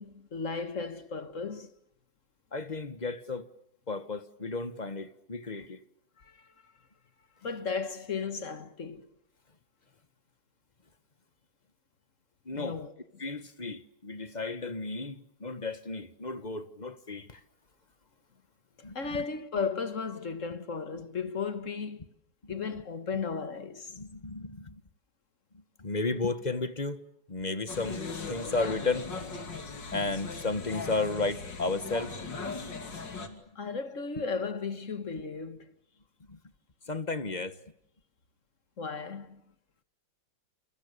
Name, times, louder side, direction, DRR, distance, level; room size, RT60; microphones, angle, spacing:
voice 1, 0.0-1.7 6.2-6.5 7.4-9.1 12.5-12.9 18.9-22.0 22.5-23.9 33.6-35.7 38.8-39.4, left 5 dB, 40° left, 1.9 m, -35 dB
voice 2, 2.5-3.4 3.9-5.8 12.4-12.8 13.2-17.4 18.8-19.0 22.4-22.6 23.9-24.8 25.8-27.0 27.3-29.1 29.9-32.1 33.2-33.8 34.2-34.3 36.3-36.4 36.9-37.6, left 3 dB, 25° left, 1.4 m, -33 dB
sound 1, 27.7-33.3, left 4 dB, 65° left, 3.4 m, -38 dB
29.5 x 29.0 x 6.9 m
omnidirectional pair, 2.1 m